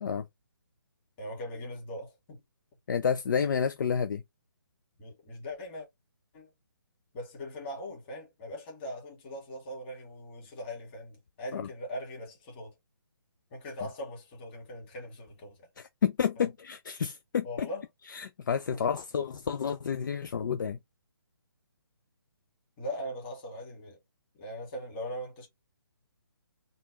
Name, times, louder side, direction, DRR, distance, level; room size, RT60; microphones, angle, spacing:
voice 1, 1.2-2.4 5.0-5.9 6.3-6.5 7.1-12.7 13.5-15.7 16.4-16.5 17.4-17.8 18.7-18.9 22.8-24.0 24.4-25.5, equal, 25° left, 2.2 m, -40 dB
voice 2, 2.9-4.2 11.5-11.7 15.8-17.7 18.1-20.8, left 7 dB, 55° left, 0.5 m, -30 dB
3.9 x 2.4 x 3.1 m
hypercardioid pair, 155°, 13 cm